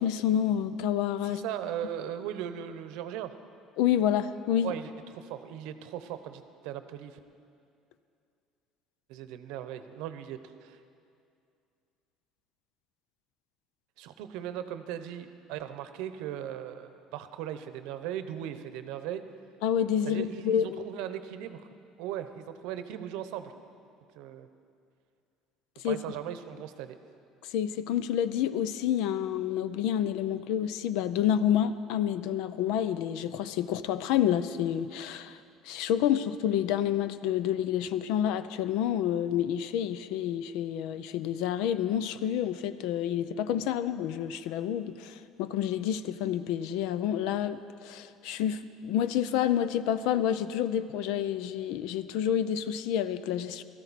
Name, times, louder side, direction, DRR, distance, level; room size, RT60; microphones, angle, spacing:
voice 1, 0.0-1.4 3.8-4.7 19.6-20.8 25.8-26.0 27.4-35.4 35.6-53.6, left 10 dB, 75° left, 13 dB, 0.5 m, -29 dB
voice 2, 1.2-3.3 4.6-7.2 9.1-10.8 14.0-19.2 20.0-21.7 22.0-23.5 24.2-24.5 25.8-27.0, right 10 dB, 75° right, 10 dB, 0.8 m, -38 dB
17.0 x 13.5 x 4.2 m, 2.4 s
cardioid pair, 150°, 0 cm